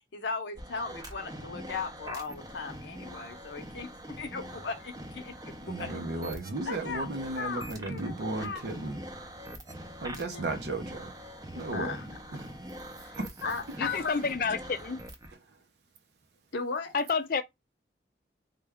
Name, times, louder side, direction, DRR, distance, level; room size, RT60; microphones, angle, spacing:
voice 1, 0.0-6.0 6.6-7.1 7.4-8.1 8.4-9.0 10.1-10.6 11.5-12.4 13.0-14.4 16.5-16.9, left 4 dB, 85° left, 0.7 m, -37 dB
sound 1, 0.6-15.3, right 1 dB, 20° right, 0.5 m, -44 dB
voice 2, 5.6-9.0 10.0-11.1 11.6-12.0 12.4-12.5 13.1-13.3, right 2 dB, 75° right, 0.6 m, -34 dB
voice 3, 13.8-15.0 16.9-17.4, left 5 dB, 50° left, 0.4 m, -29 dB
3.3 x 2.2 x 3.4 m
head